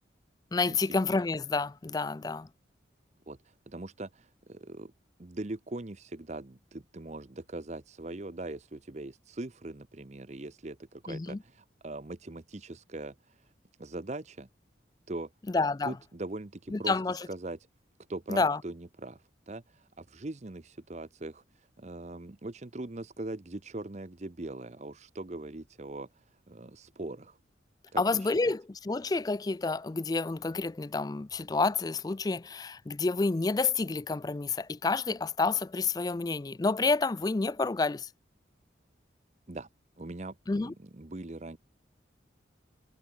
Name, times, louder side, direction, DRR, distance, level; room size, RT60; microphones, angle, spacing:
voice 1, 0.5-2.5 11.1-11.4 15.5-16.0 16.7-17.2 18.3-18.6 28.0-38.1 40.5-40.7, left 3 dB, 20° left, 0.3 m, -29 dB
voice 2, 3.3-4.9 5.2-13.4 13.8-14.5 15.1-15.3 15.8-17.6 18.1-27.4 27.9-28.5 39.5-39.7 40.0-41.6, right 2 dB, 35° right, 0.8 m, -41 dB
head